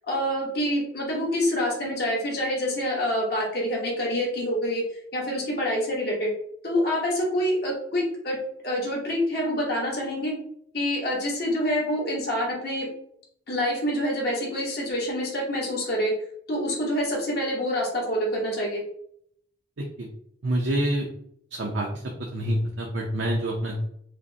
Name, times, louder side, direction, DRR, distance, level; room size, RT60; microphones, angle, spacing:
voice 1, 0.1-4.8 5.1-6.3 6.6-8.4 8.6-10.3 10.7-12.9 13.5-16.1 16.5-18.8, equal, 55° left, -3 dB, 1.0 m, -26 dB
voice 2, 19.8-20.1 20.4-21.1 21.5-21.9 22.3-23.8, right 1 dB, 70° right, 0 dB, 0.5 m, -27 dB
5.0 x 2.1 x 2.7 m, 0.69 s
head